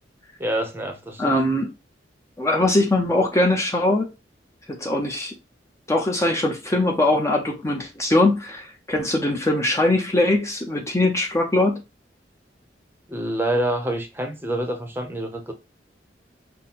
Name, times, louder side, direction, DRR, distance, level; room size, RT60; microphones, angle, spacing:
voice 1, 0.4-1.4 13.1-15.5, right 1 dB, 15° right, 0.8 m, -27 dB
voice 2, 1.2-1.7 2.4-4.1 4.7-5.3 5.9-11.8, left 1 dB, 15° left, 0.7 m, -21 dB
5.7 x 2.2 x 4.1 m
head